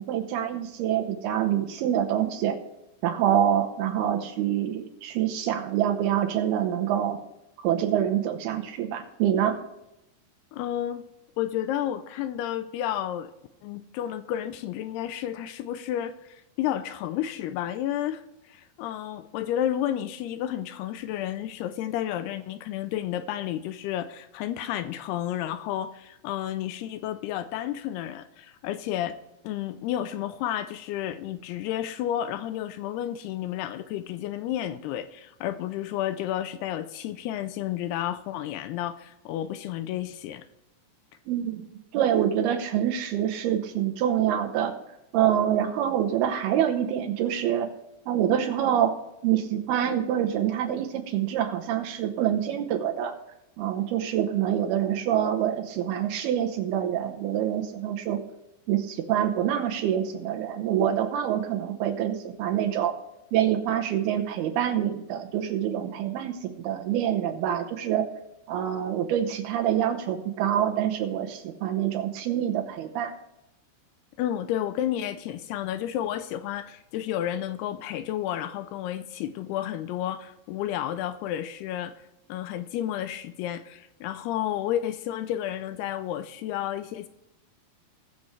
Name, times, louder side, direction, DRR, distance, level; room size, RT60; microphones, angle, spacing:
voice 1, 0.0-2.6 3.0-7.2 7.6-9.6 41.3-41.6 41.9-44.7 45.1-47.7 48.1-48.9 49.2-53.1 53.6-58.2 58.7-62.9 63.3-68.1 68.5-73.1, right 10 dB, 75° right, 5 dB, 2.7 m, -26 dB
voice 2, 10.5-11.0 11.4-13.3 13.6-29.2 29.4-40.5 74.2-82.0 82.3-87.1, left 11 dB, 85° left, 11 dB, 2.4 m, -31 dB
20.5 x 6.9 x 3.2 m, 0.88 s
omnidirectional pair, 4.9 m